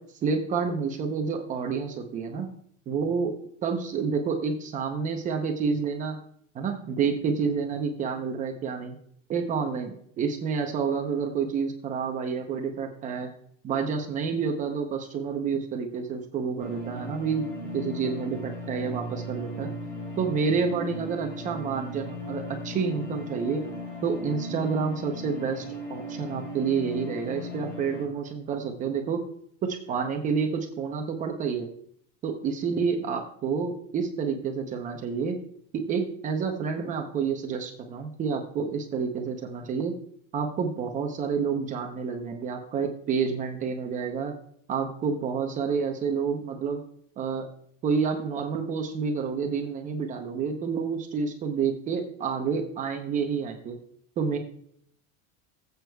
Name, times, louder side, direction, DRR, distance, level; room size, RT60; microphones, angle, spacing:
voice 1, 0.2-2.5 2.9-3.3 3.6-6.2 6.5-9.0 9.3-13.3 13.6-17.5 17.7-19.7 20.2-23.6 24.0-29.2 29.6-31.7 32.2-35.4 35.7-39.9 40.3-44.3 44.7-46.8 47.2-47.5 47.8-53.8 54.2-54.4, right 5 dB, 20° right, 4 dB, 0.7 m, -29 dB
sound 1, 16.6-28.0, left 1 dB, 35° left, 3.8 m, -37 dB
19.0 x 8.0 x 2.3 m, 0.65 s
supercardioid pair, 170°, 39 cm